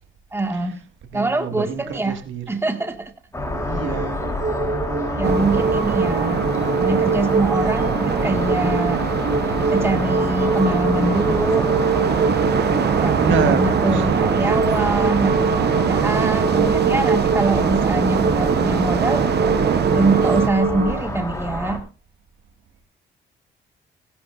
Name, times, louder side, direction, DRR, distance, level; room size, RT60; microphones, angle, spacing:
voice 1, 0.3-0.8 1.1-2.2 2.5-3.1 5.2-6.5 6.8-9.0 9.7-11.7 13.0-19.3 19.9-21.8, right 2 dB, 10° right, 6 dB, 1.8 m, -24 dB
voice 2, 1.1-2.4 3.7-4.2 13.2-14.5, right 5 dB, 75° right, 6 dB, 2.0 m, -27 dB
sound 1, 3.3-21.8, left 1 dB, 15° left, 3.5 m, -28 dB
sound 2, 3.5-21.1, right 3 dB, 40° right, 3.2 m, -25 dB
sound 3, 5.2-20.5, right 9 dB, 55° right, 0.8 m, -23 dB
17.5 x 11.5 x 2.5 m, 0.31 s
cardioid pair, 90°, 20 cm